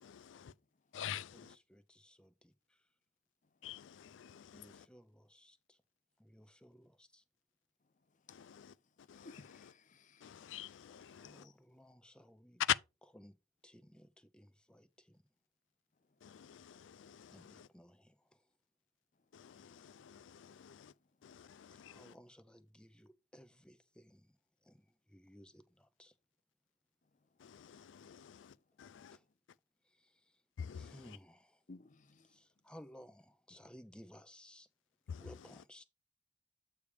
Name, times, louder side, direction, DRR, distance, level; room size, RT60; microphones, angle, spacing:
voice 1, 0.0-0.5 0.9-1.6 3.6-4.9 8.3-9.7 10.2-11.5 12.6-12.8 16.2-17.7 19.3-20.9 21.2-22.1 27.4-29.2 30.6-31.2 35.1-35.4, left 10 dB, 80° left, 0.4 m, -44 dB
voice 2, 1.3-2.9 4.5-5.8 6.2-7.2 11.1-12.6 13.1-13.4 13.6-15.2 17.3-18.5 21.8-24.3 24.6-26.1 29.1-29.2 29.8-30.4 30.7-31.6 32.2-34.7 35.2-35.8, equal, 5° left, 0.6 m, -59 dB
voice 3, 9.1-10.5 11.4-11.5 31.7-32.3, left 3 dB, 45° left, 0.6 m, -58 dB
8.4 x 3.4 x 4.8 m
head